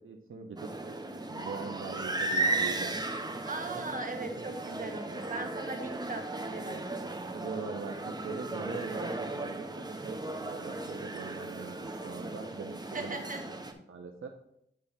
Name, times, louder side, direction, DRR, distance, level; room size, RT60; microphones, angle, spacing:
voice 1, 0.0-3.0 3.6-5.1 7.3-13.2 13.9-14.3, right 4 dB, 80° right, 3 dB, 0.7 m, -42 dB
sound 1, 0.6-13.7, right 2 dB, 20° right, 0.9 m, -36 dB
voice 2, 3.4-6.8 12.9-13.4, right 2 dB, 40° right, 3 dB, 1.4 m, -38 dB
8.5 x 3.3 x 5.7 m, 0.75 s
wide cardioid pair, 65°, 21 cm